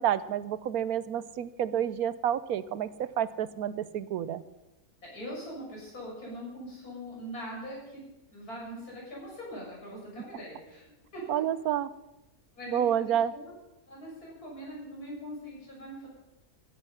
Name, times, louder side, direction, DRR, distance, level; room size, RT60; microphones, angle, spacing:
voice 1, 0.0-4.4 11.3-11.9 12.7-13.3, right 10 dB, 80° right, 16 dB, 1.2 m, -29 dB
voice 2, 5.0-8.0 8.3-10.8 11.1-11.4 12.6-13.5 13.9-16.1, equal, 85° left, -4 dB, 7.3 m, -42 dB
15.0 x 12.5 x 5.7 m, 0.96 s
omnidirectional pair, 1.6 m